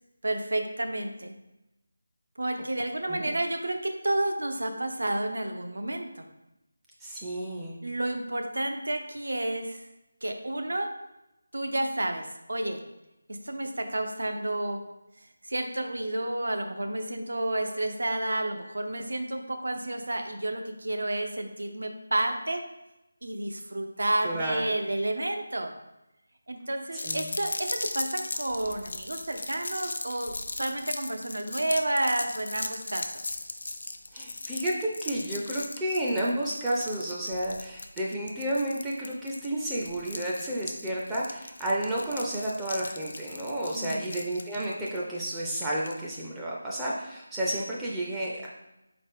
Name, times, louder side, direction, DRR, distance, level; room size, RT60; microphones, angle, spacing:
voice 1, 0.2-1.3 2.4-6.2 7.8-9.9 10.2-10.9 11.5-12.8 13.4-14.8 15.2-22.6 23.2-25.7 26.5-33.4 43.7-44.1, right 1 dB, 85° right, 5 dB, 0.6 m, -31 dB
voice 2, 7.0-7.8 24.2-24.7 26.9-27.3 34.1-48.5, right 1 dB, 5° right, -6 dB, 0.4 m, -31 dB
sound 1, 27.0-46.0, left 2 dB, 60° left, 0.4 m, -38 dB
4.0 x 3.7 x 3.6 m, 0.93 s
figure-of-eight pair, 170°, 0 cm